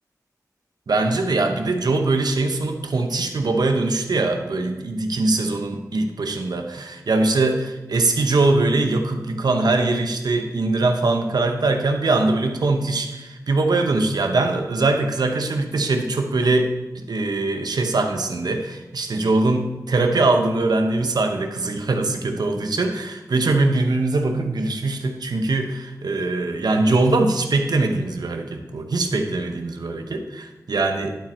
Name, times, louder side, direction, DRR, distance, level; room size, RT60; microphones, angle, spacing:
voice 1, 0.9-31.1, right 2 dB, 80° right, 5 dB, 0.9 m, -22 dB
11.0 x 4.5 x 4.3 m, 1.1 s
wide cardioid pair, 65°, 7 cm